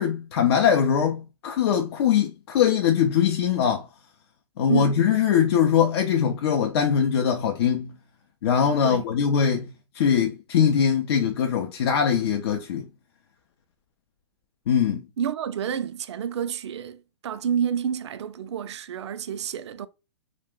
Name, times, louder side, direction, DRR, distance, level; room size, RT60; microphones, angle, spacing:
voice 1, 0.0-3.9 4.6-7.9 8.4-12.8 14.7-15.0, left 8 dB, 60° left, 0.5 m, -22 dB
voice 2, 15.2-19.9, right 8 dB, 70° right, 0.4 m, -29 dB
2.4 x 2.0 x 3.5 m
hypercardioid pair, 125°, 15 cm